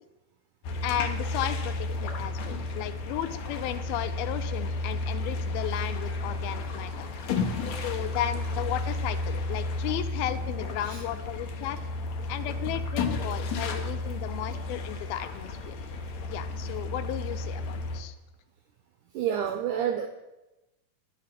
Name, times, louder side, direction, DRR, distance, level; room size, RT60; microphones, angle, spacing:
sound 1, 0.6-18.0, left 2 dB, 65° left, 1.9 m, -32 dB
voice 1, 0.8-1.7 2.0-7.1 7.8-11.8 12.3-15.8 16.3-18.2, left 11 dB, 80° left, 11 dB, 2.5 m, -34 dB
voice 2, 19.2-20.1, right 9 dB, 85° right, 7 dB, 1.8 m, -28 dB
9.6 x 9.4 x 5.8 m, 1.0 s
omnidirectional pair, 4.4 m